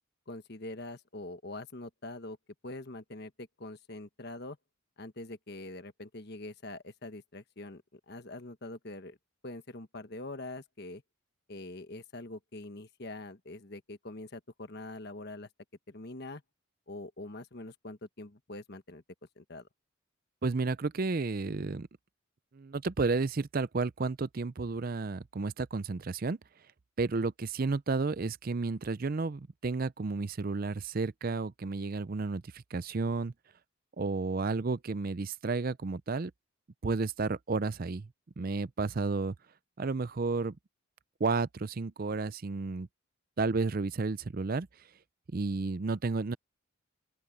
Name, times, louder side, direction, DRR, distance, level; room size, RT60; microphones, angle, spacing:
voice 1, 0.3-2.4 2.6-4.6 5.0-9.2 9.4-11.0 11.5-15.5 15.9-16.4 16.9-19.0 19.4-19.7, left 2 dB, 50° left, 1.4 m, -44 dB
voice 2, 20.4-21.9 22.5-26.4 27.0-33.3 34.0-36.3 36.8-38.1 38.4-39.3 39.8-40.6 41.2-42.9 43.4-44.7 45.3-46.3, right 3 dB, 40° right, 0.5 m, -32 dB
open air
head